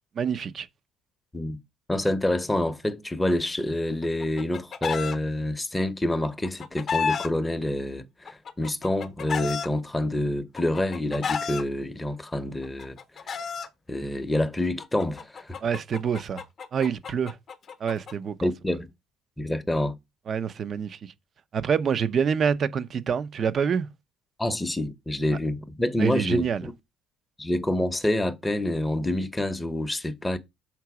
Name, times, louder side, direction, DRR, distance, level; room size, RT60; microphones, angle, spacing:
voice 1, 0.1-0.7 15.6-16.4 16.7-17.4 17.8-18.5 20.3-21.1 21.5-23.9 26.0-26.7, right 7 dB, 40° right, 0.6 m, -26 dB
voice 2, 1.9-13.0 13.3-13.4 13.9-15.6 18.4-18.9 19.4-19.9 24.4-26.7 27.4-30.4, left 1 dB, 10° left, 0.8 m, -27 dB
Chicken rooster, 4.0-5.2 6.2-7.3 8.3-9.7 10.6-11.6 12.6-13.7 14.8-18.1, left 6 dB, 40° left, 0.8 m, -31 dB
5.9 x 3.8 x 4.8 m
cardioid pair, 115°, 0 cm